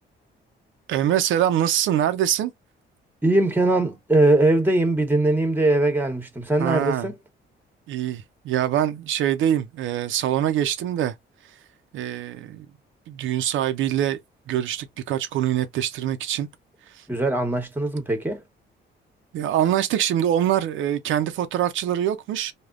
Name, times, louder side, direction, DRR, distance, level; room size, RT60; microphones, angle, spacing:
voice 1, 0.9-2.5 6.6-7.1 7.9-11.1 11.9-12.7 13.1-14.2 14.5-16.5 16.9-17.0 19.3-22.5, right 11 dB, 80° right, 0.5 m, -24 dB
voice 2, 3.2-7.2 17.1-18.4, right 2 dB, 10° right, 1.0 m, -21 dB
3.4 x 2.2 x 2.4 m
cardioid pair, 90°, 20 cm